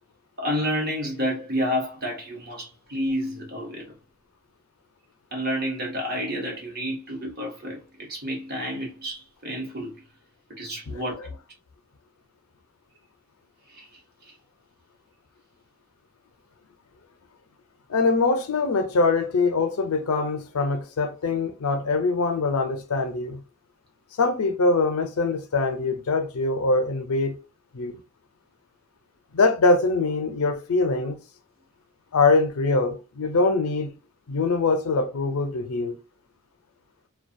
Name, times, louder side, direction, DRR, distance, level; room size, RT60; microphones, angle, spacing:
voice 1, 0.4-3.9 5.3-9.9 10.5-11.1 13.7-13.9, equal, 45° right, 1.0 m, -30 dB
voice 2, 17.9-23.4 24.2-27.4 27.7-28.0 29.3-31.2 32.1-33.9 34.3-36.0, left 3 dB, 85° left, 0.5 m, -23 dB
2.3 x 2.2 x 2.5 m
head